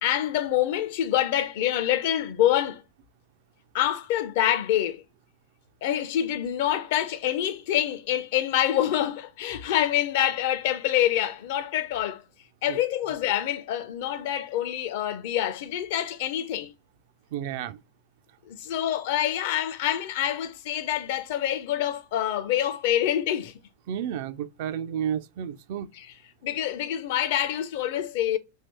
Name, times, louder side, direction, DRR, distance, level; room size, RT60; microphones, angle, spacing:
voice 1, 0.0-2.8 3.7-5.0 5.8-12.2 12.6-16.7 18.5-23.5 25.9-26.1 26.4-28.4, left 11 dB, 50° left, 0.5 m, -26 dB
voice 2, 17.3-17.8 23.9-25.9, right 9 dB, 50° right, 0.3 m, -31 dB
2.9 x 2.7 x 3.2 m
figure-of-eight pair, 90°, 0 cm